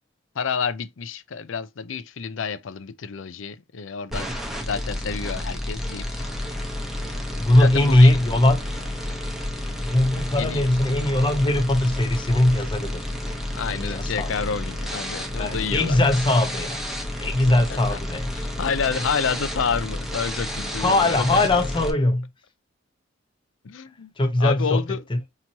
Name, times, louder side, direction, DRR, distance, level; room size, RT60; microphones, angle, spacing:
voice 1, 0.3-4.3 4.6-6.2 7.5-8.2 10.4-10.6 13.5-16.2 17.5-18.0 18.3-21.5 23.6-24.1 24.4-25.0, left 6 dB, 70° left, 0.5 m, -29 dB
sound 1, 4.1-21.9, left 1 dB, ahead, 0.9 m, -31 dB
voice 2, 7.4-8.6 9.9-13.0 13.7-14.3 15.3-16.8 17.2-18.3 20.8-22.3 24.2-24.8 25.1-25.2, left 1 dB, 25° left, 0.9 m, -20 dB
5.7 x 3.0 x 2.8 m
head